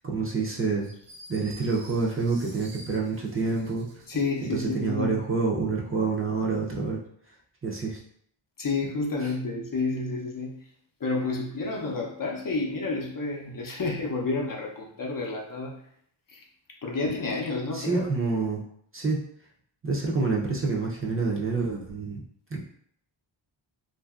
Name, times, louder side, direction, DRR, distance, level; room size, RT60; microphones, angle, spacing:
voice 1, 0.0-0.9 1.3-3.9 4.5-7.0 7.6-8.0 9.2-9.3 17.7-18.6 18.9-19.2 19.8-22.2 22.5-22.6, right 4 dB, 25° right, -3 dB, 0.5 m, -27 dB
sound 1, 0.8-4.8, right 1 dB, 85° right, 1.2 m, -49 dB
voice 2, 4.1-5.2 8.6-10.5 11.0-15.8 16.3-16.4 16.8-18.1, left 3 dB, 45° left, 0 dB, 0.6 m, -30 dB
2.8 x 2.5 x 2.3 m, 0.66 s
cardioid pair, 70°, 48 cm